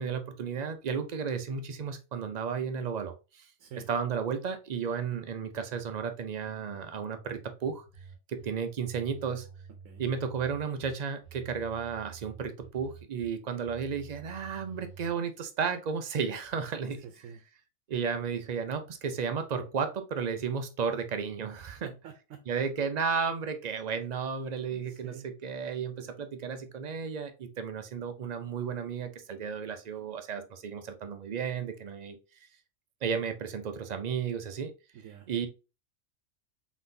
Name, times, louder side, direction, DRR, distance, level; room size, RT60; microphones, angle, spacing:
voice 1, 0.0-3.5 3.9-7.8 8.3-9.5 10.0-17.0 17.9-21.9 22.5-32.5 33.0-34.7 35.3-35.5, right 6 dB, 65° right, 0.4 m, -33 dB
sound 1, 6.0-6.1 6.4-8.5 8.8-10.9 11.2-13.3 13.6-15.1, right 8 dB, 80° left, 2.1 m, -50 dB
voice 2, 17.0-17.4 21.8-22.5 24.7-25.3 34.9-35.3, right 8 dB, 85° right, 1.0 m, -47 dB
4.0 x 4.0 x 2.6 m
omnidirectional pair, 1.4 m